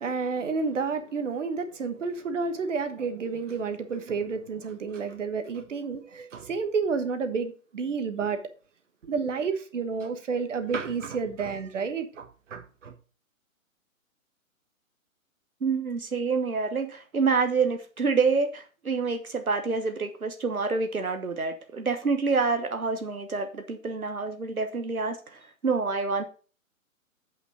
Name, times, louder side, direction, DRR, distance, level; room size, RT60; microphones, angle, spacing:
voice 1, 0.0-8.4 9.0-12.9, right 5 dB, 60° right, 1.4 m, -30 dB
voice 2, 15.6-25.2 25.6-26.2, right 4 dB, 85° right, 1.2 m, -27 dB
8.3 x 5.6 x 5.1 m
figure-of-eight pair, 125°, 42 cm